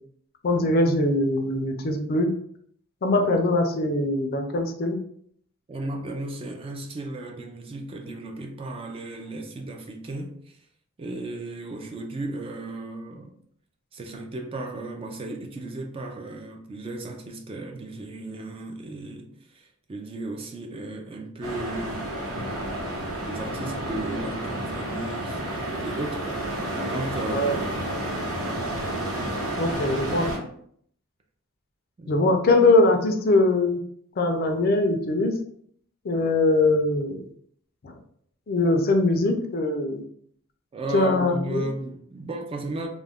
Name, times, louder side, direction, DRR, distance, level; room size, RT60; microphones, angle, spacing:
voice 1, 0.4-2.3 3.0-5.0 27.3-27.5 29.6-30.3 32.1-33.8 34.2-35.4 36.0-37.3 37.8-37.9 38.5-40.0 40.9-41.7, left 2 dB, 45° left, 0.4 m, -22 dB
voice 2, 5.7-10.7 11.0-13.3 13.9-22.2 23.2-25.4 25.8-28.0 32.0-32.3 40.7-42.9, right 2 dB, 25° right, 0.3 m, -35 dB
sound 1, 21.4-30.4, right 1 dB, 90° right, 1.0 m, -30 dB
2.3 x 2.1 x 3.4 m
head